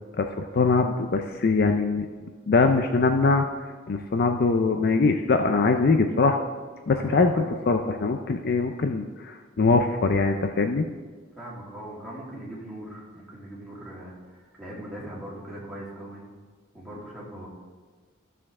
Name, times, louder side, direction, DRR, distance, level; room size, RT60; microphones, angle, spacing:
voice 1, 0.2-2.1 2.5-3.5 3.9-6.4 6.9-10.8, left 3 dB, 50° left, 6 dB, 0.5 m, -22 dB
voice 2, 6.8-7.5 11.4-16.3 16.7-17.5, right 1 dB, ahead, -6 dB, 2.5 m, -40 dB
13.5 x 6.8 x 3.6 m, 1.5 s
head